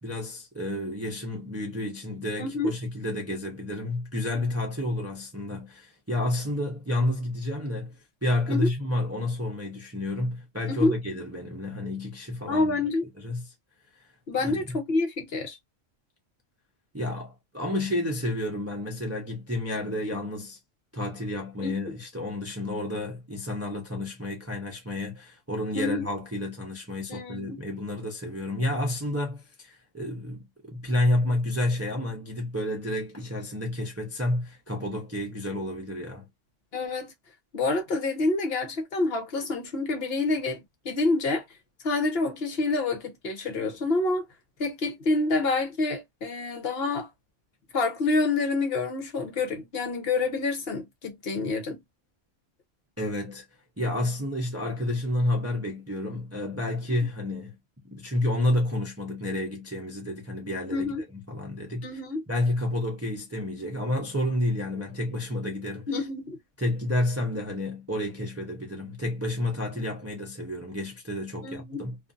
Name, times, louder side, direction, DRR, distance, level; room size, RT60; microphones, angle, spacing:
voice 1, 0.0-12.8 13.1-13.5 14.0-14.1 14.4-14.8 16.9-20.6 20.9-36.3 53.0-53.5 53.8-57.5 57.8-62.0 62.3-66.0 66.6-72.0, left 1 dB, 20° right, 0.5 m, -30 dB
voice 2, 2.4-2.7 8.5-8.7 10.7-10.9 12.5-13.0 14.3-15.6 21.6-21.8 25.7-26.1 27.1-27.5 36.7-37.1 37.5-40.6 40.8-41.4 41.8-44.3 44.6-47.1 47.7-51.8 60.7-61.0 61.8-62.2 65.9-66.4 71.4-71.8, left 3 dB, 55° left, 0.9 m, -27 dB
2.5 x 2.5 x 2.4 m
omnidirectional pair, 1.3 m